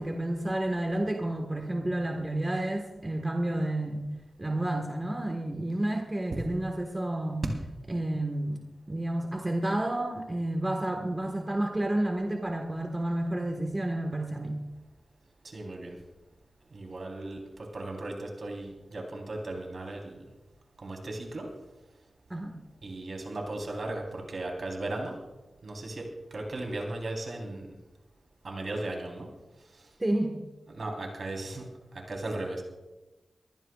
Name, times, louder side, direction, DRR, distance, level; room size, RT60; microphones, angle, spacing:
voice 1, 0.0-4.0 4.4-7.4 7.9-14.6 22.3-22.6 30.0-30.4, right 1 dB, 25° right, 2 dB, 1.5 m, -30 dB
voice 2, 15.4-16.0 16.7-20.2 20.8-21.5 22.8-25.2 25.6-27.7 28.4-29.3 29.7-29.9 30.7-32.6, right 2 dB, 60° right, 0 dB, 3.8 m, -36 dB
23.5 x 15.5 x 2.4 m, 1.1 s
wide cardioid pair, 75°, 0 cm